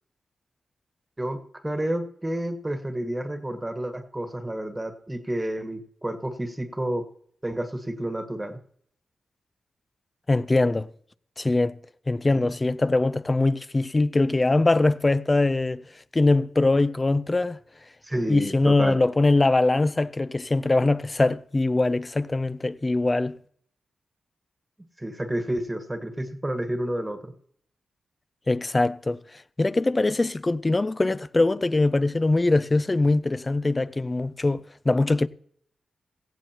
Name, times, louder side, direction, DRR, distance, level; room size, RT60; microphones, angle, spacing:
voice 1, 1.2-7.0 7.4-8.6 12.3-12.4 18.0-19.0 25.0-27.3, right 1 dB, 20° right, 1.5 m, -30 dB
voice 2, 10.3-10.9 11.4-11.8 12.1-15.8 16.1-17.6 18.3-23.4 28.5-35.3, left 2 dB, 30° left, 0.5 m, -22 dB
17.0 x 15.0 x 3.0 m
cardioid pair, 50°, 0 cm